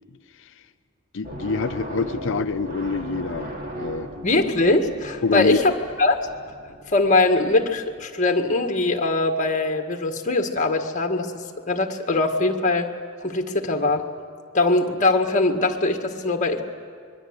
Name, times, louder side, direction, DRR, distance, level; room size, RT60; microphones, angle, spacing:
voice 1, 1.1-3.5 3.8-4.1 5.2-5.6, left 4 dB, 60° left, 10 dB, 0.6 m, -25 dB
sound 1, 1.2-8.0, equal, 40° right, 2.2 m, -37 dB
voice 2, 4.2-6.2 6.9-12.9 13.2-14.1 14.5-16.6, left 2 dB, 35° left, 4 dB, 1.7 m, -22 dB
25.5 x 22.0 x 8.1 m, 2.2 s
head